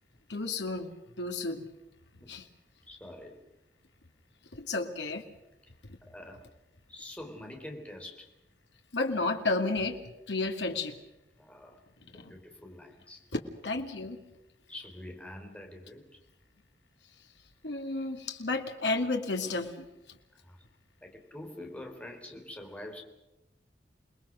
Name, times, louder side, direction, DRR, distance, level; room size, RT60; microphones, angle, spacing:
voice 1, 0.3-0.9 1.2-1.7 2.3-2.5 4.5-5.2 8.9-10.0 10.3-11.0 12.1-12.3 13.3-14.2 17.6-20.2, left 3 dB, 85° left, 4 dB, 2.3 m, -32 dB
voice 2, 2.9-3.4 6.0-6.5 6.9-8.3 11.4-13.2 14.7-16.2 20.3-20.6 21.0-23.0, left 1 dB, 10° left, 2 dB, 3.8 m, -46 dB
28.5 x 20.5 x 6.3 m, 0.96 s
head